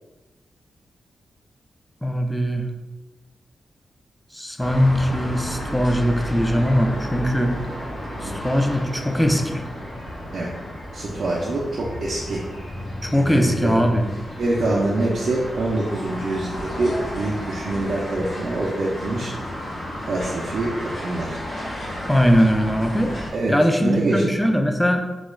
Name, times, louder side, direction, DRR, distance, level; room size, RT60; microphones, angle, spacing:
voice 1, 2.0-2.7 4.3-7.6 8.2-9.6 13.0-14.1 22.1-23.1 23.5-25.0, equal, 5° left, 4 dB, 0.3 m, -20 dB
sound 1, 4.6-23.3, equal, 65° left, 0.8 m, -33 dB
voice 2, 10.9-12.4 13.1-13.8 14.4-19.3 20.1-20.7 21.0-21.4 23.3-23.5 23.8-24.2, right 2 dB, 70° right, -4 dB, 0.4 m, -25 dB
2.3 x 2.1 x 3.0 m, 1.1 s
cardioid pair, 60°, 0 cm